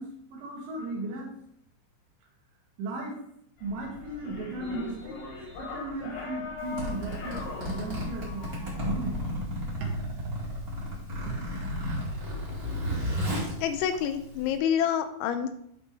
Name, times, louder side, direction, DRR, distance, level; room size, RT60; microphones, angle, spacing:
voice 1, 0.0-1.3 2.8-3.2 3.6-5.2 5.5-9.2 9.8-9.9, right 2 dB, 75° right, -2 dB, 3.9 m, -36 dB
sound 1, 3.6-9.4, left 4 dB, 65° left, 1.8 m, -40 dB
Zipper (clothing), 6.6-14.6, left 1 dB, 35° right, 1.4 m, -33 dB
voice 2, 13.6-15.5, left 9 dB, 90° left, 8 dB, 3.1 m, -27 dB
12.0 x 4.1 x 3.4 m, 0.71 s
omnidirectional pair, 5.4 m